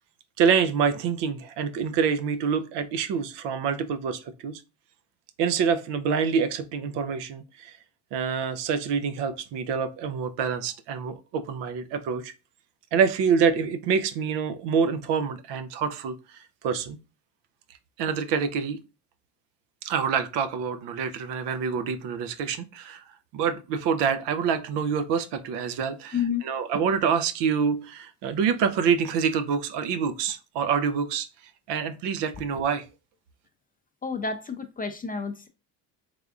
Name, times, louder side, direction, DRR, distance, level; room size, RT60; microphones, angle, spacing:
voice 1, 0.4-4.6 5.4-7.7 8.1-12.3 12.9-16.1 16.6-17.0 18.0-18.8 19.8-23.0 23.3-26.2 26.4-31.3 31.7-32.9, right 6 dB, 60° right, 0.6 m, -26 dB
voice 2, 26.1-26.4 34.0-35.5, left 6 dB, 20° left, 0.5 m, -30 dB
3.4 x 3.4 x 2.4 m
hypercardioid pair, 70°, 48 cm